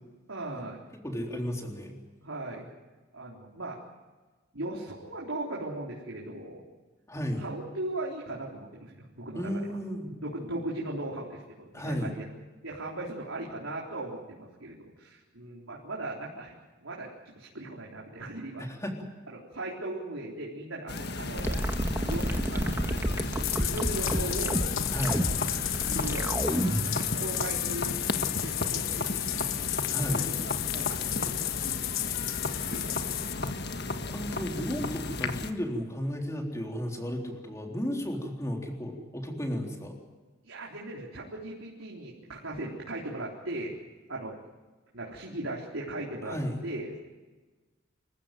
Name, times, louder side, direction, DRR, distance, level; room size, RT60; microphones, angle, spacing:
voice 1, 0.3-0.8 2.2-2.7 3.1-3.8 4.5-6.6 7.4-9.5 10.2-12.2 12.6-16.6 16.8-18.6 19.3-21.6 22.1-23.1 23.5-24.6 25.1-25.5 25.9-26.3 26.7-28.0 28.4-29.4 30.1-31.8 32.7-33.1 40.4-43.7 44.1-44.3 44.9-46.4 46.6-46.9, right 2 dB, 85° right, -4 dB, 4.0 m, -38 dB
voice 2, 0.9-2.0 7.1-7.4 9.3-10.1 11.7-12.1 18.6-19.1 24.9-25.3 29.9-30.2 32.5-32.9 34.1-40.0 46.2-46.6, equal, 15° left, 1 dB, 3.7 m, -34 dB
sound 1, 20.9-35.5, left 2 dB, 55° left, 1.5 m, -35 dB
sound 2, 21.4-27.0, equal, 10° right, 1.7 m, -29 dB
Bathtub (filling or washing), 23.2-33.3, left 14 dB, 90° left, 1.0 m, -32 dB
26.5 x 15.5 x 9.3 m, 1.3 s
head